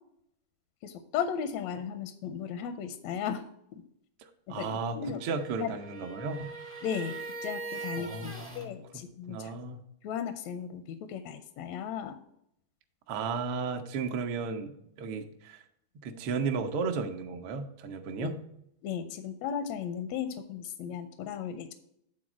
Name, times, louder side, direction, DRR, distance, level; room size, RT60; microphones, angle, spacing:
voice 1, 0.8-3.4 3.7-3.8 4.6-5.2 5.6-5.7 6.8-7.2 7.4-9.5 10.0-12.2 18.2-18.3 18.8-21.7, left 8 dB, 80° left, 9 dB, 1.6 m, -36 dB
voice 2, 4.5-6.5 8.0-8.8 9.3-9.8 13.1-15.6 16.0-18.4, right 4 dB, 75° right, 4 dB, 1.2 m, -34 dB
sound 1, 5.1-8.7, right 3 dB, 20° right, 0.3 m, -41 dB
8.7 x 4.1 x 6.1 m, 0.74 s
omnidirectional pair, 3.6 m